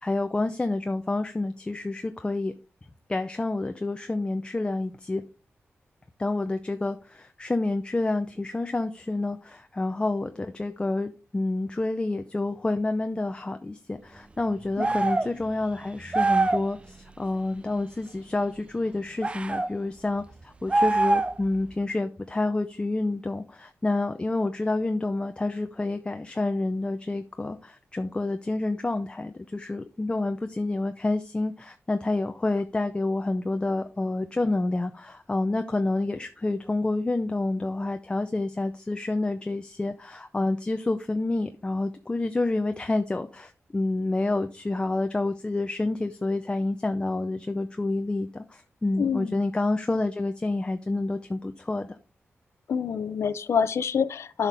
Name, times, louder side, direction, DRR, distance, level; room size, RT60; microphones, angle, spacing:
voice 1, 0.0-2.5 3.1-5.2 6.2-52.0, left 2 dB, 20° left, 0.6 m, -28 dB
sound 1, 14.8-15.3 16.1-16.7 19.2-19.7 20.7-21.5, right 2 dB, 25° right, 0.4 m, -23 dB
voice 2, 48.9-49.4 52.7-54.5, left 6 dB, 75° left, 0.6 m, -27 dB
11.5 x 5.8 x 3.4 m
wide cardioid pair, 105°, 5 cm